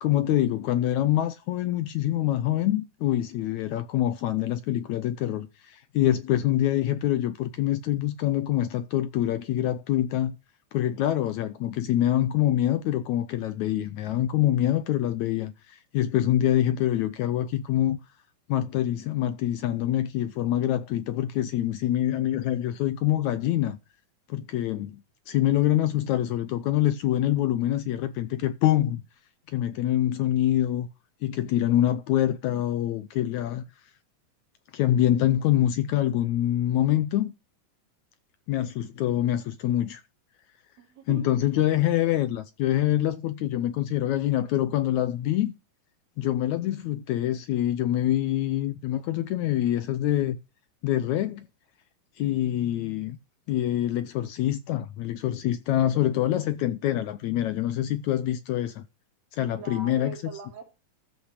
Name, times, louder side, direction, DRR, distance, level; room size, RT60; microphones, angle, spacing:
voice 1, 0.0-10.4 10.7-18.0 18.5-23.8 24.3-29.0 29.5-30.9 31.2-33.6 34.7-37.3 38.5-40.0 41.1-45.5 46.2-50.4 50.8-51.5 52.2-53.2 53.5-58.8 59.3-60.2, left 12 dB, 75° left, 1.8 m, -25 dB
voice 2, 31.6-32.0 40.8-41.4 59.6-60.6, right 6 dB, 85° right, 4.9 m, -41 dB
13.5 x 5.7 x 6.4 m
omnidirectional pair, 4.0 m